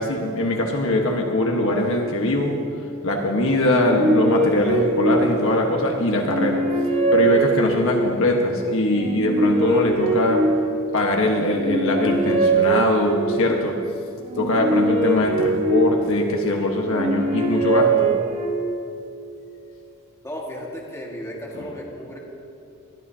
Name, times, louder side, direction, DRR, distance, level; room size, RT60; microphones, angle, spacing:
voice 1, 0.0-2.6 3.0-6.7 7.1-10.5 10.9-13.8 14.4-18.1 21.6-21.7, left 1 dB, 65° left, 1 dB, 1.3 m, -22 dB
sound 1, 3.6-5.7 6.2-8.2 8.9-11.0 11.5-13.5 14.2-16.4 16.9-18.9, right 2 dB, 30° right, 1.3 m, -22 dB
voice 2, 20.2-22.2, equal, 15° left, -2 dB, 1.8 m, -34 dB
21.0 x 12.5 x 2.8 m, 2.6 s
head